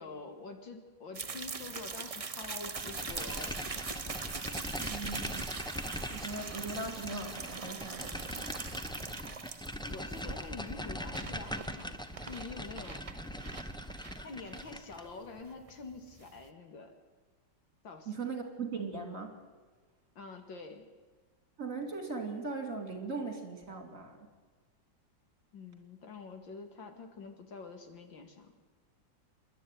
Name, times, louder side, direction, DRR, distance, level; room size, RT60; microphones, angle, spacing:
voice 1, 0.0-3.6 9.9-12.0 12.3-13.0 13.6-13.7 14.2-16.9 17.8-18.3 20.2-20.9 25.5-28.6, left 4 dB, 90° left, 6 dB, 2.8 m, -46 dB
sound 1, 1.1-16.5, right 5 dB, 65° right, 0.3 m, -42 dB
sound 2, 2.8-15.1, equal, 5° left, 0.4 m, -41 dB
voice 2, 4.7-5.5 6.1-8.6 18.1-19.4 21.6-24.2, right 4 dB, 45° right, 5 dB, 3.4 m, -39 dB
27.5 x 11.5 x 9.3 m, 1.4 s
omnidirectional pair, 2.0 m